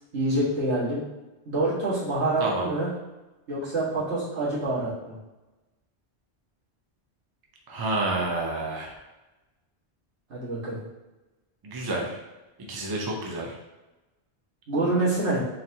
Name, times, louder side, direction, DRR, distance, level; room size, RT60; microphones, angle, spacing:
voice 1, 0.1-1.0 1.5-2.9 3.5-5.2 10.3-10.8 14.7-15.4, right 2 dB, 75° right, -9 dB, 1.8 m, -26 dB
voice 2, 7.7-8.9 11.6-12.2 12.6-13.6, right 2 dB, 30° right, -1 dB, 0.4 m, -29 dB
4.0 x 2.7 x 2.7 m, 1.1 s
omnidirectional pair, 1.1 m